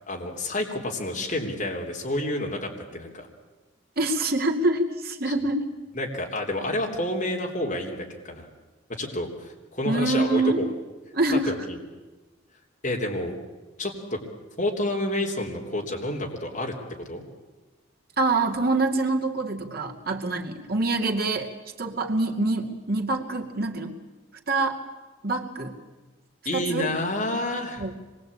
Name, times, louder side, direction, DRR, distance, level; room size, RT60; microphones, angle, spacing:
voice 1, 0.1-3.3 5.9-8.5 9.0-10.7 11.5-11.8 12.8-13.4 13.8-14.2 14.6-16.7 17.0-17.2 26.4-27.9, left 1 dB, 40° left, 0 dB, 3.5 m, -29 dB
voice 2, 4.0-5.7 9.8-10.6 11.1-11.5 18.2-21.5 21.8-24.0 24.5-24.8 25.2-25.7 26.5-26.9 27.8-27.9, right 2 dB, 50° right, 1 dB, 2.5 m, -25 dB
26.0 x 21.5 x 8.7 m, 1.2 s
head